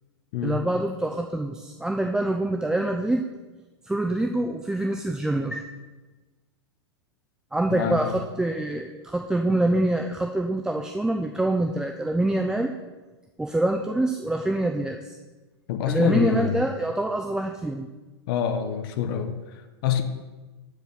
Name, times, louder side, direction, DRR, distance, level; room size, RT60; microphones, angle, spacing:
voice 1, 0.4-3.2 3.9-5.6 7.5-12.7 13.4-15.2 15.9-17.9, right 1 dB, 5° right, 2 dB, 0.4 m, -25 dB
voice 2, 7.7-8.2 15.7-16.7 18.3-20.0, left 8 dB, 55° left, 6 dB, 0.9 m, -26 dB
13.0 x 5.0 x 4.0 m, 1.2 s
hypercardioid pair, 120°, 14 cm